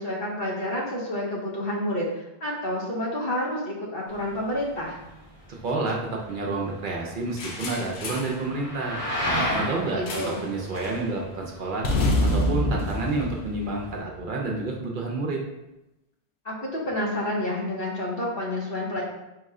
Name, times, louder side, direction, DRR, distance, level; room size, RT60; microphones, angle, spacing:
voice 1, 0.0-2.1 2.4-5.0 9.9-10.4 16.4-19.0, left 1 dB, 65° left, -3 dB, 1.1 m, -29 dB
sound 1, 4.1-14.0, equal, 35° left, 1.2 m, -34 dB
voice 2, 5.5-9.0 9.5-11.9 12.3-15.4, right 3 dB, 60° right, -1 dB, 0.7 m, -29 dB
sound 2, 7.4-8.4 10.1-10.5 10.7-11.0 11.8-14.2, left 1 dB, 85° left, 0.9 m, -27 dB
4.6 x 2.1 x 3.6 m, 0.93 s
omnidirectional pair, 1.1 m